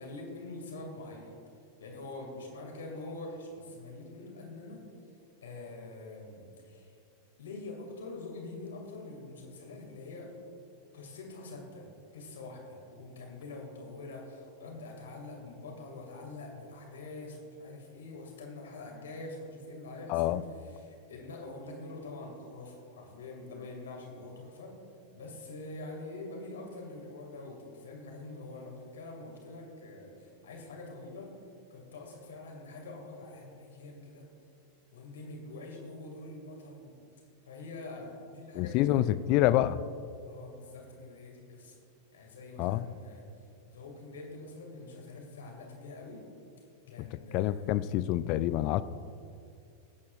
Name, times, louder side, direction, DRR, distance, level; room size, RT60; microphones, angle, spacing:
voice 1, 0.0-1.3 1.8-4.8 5.4-6.9 7.4-10.3 10.9-11.8 12.1-20.4 20.7-24.8 25.1-31.3 31.7-34.2 34.9-36.9 37.5-39.3 40.3-41.8 42.1-43.2 43.7-46.2 46.9-47.7, left 2 dB, 65° left, 0 dB, 2.4 m, -45 dB
voice 2, 20.1-20.4 38.5-39.8 42.6-42.9 47.0-48.8, left 14 dB, 40° left, 15 dB, 0.4 m, -27 dB
21.5 x 8.4 x 2.5 m, 2.5 s
figure-of-eight pair, 90°, 0 cm